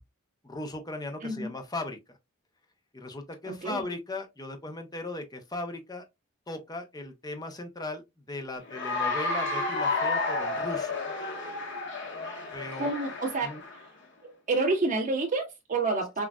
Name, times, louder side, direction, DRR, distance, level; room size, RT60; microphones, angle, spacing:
voice 1, 0.4-2.2 2.9-6.0 6.5-8.0 8.3-11.0 12.5-12.9 13.4-13.6, left 2 dB, 20° left, 0.7 m, -37 dB
voice 2, 3.4-3.8 12.7-13.5 14.2-16.2, right 3 dB, 35° right, 1.6 m, -29 dB
Cheering / Applause, 8.7-13.8, left 3 dB, 55° left, 1.2 m, -31 dB
5.9 x 2.4 x 2.3 m
head